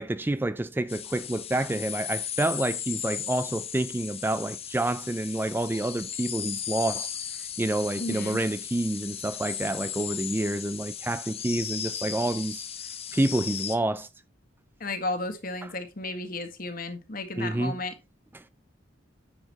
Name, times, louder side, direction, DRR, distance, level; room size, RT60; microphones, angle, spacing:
voice 1, 0.0-7.1 7.6-12.6 13.1-14.1 17.4-17.8 18.3-18.4, right 1 dB, 10° right, 0.4 m, -28 dB
sound 1, 0.9-13.8, left 9 dB, 35° left, 0.9 m, -36 dB
voice 2, 8.0-8.4 14.8-17.9, left 2 dB, 50° left, 1.7 m, -33 dB
10.0 x 7.0 x 3.0 m
head